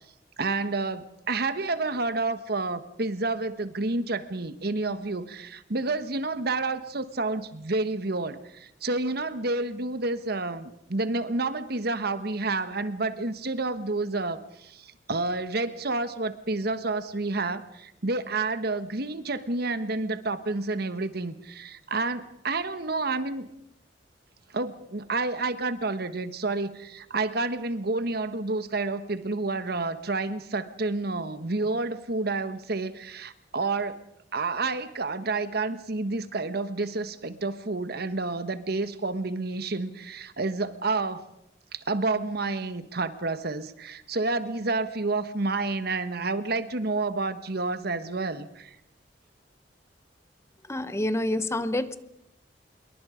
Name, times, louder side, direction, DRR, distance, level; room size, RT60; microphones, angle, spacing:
voice 1, 0.4-23.5 24.5-34.0 34.3-41.2 41.7-48.8, right 3 dB, 60° right, 12 dB, 1.3 m, -29 dB
voice 2, 50.7-52.0, left 1 dB, 15° left, 12 dB, 1.0 m, -27 dB
26.5 x 22.5 x 5.1 m, 0.80 s
head